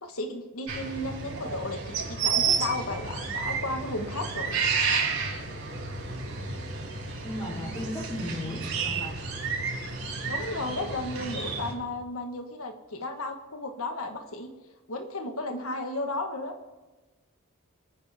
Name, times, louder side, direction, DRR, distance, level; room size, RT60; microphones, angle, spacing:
voice 1, 0.0-4.6 10.2-14.5 14.9-16.5, left 2 dB, 85° left, 5 dB, 1.4 m, -34 dB
sound 1, 0.7-11.7, right 5 dB, 80° right, 5.3 m, -31 dB
voice 2, 7.2-9.2, left 1 dB, 15° left, -1 dB, 2.9 m, -35 dB
28.0 x 9.9 x 3.6 m, 1.2 s
head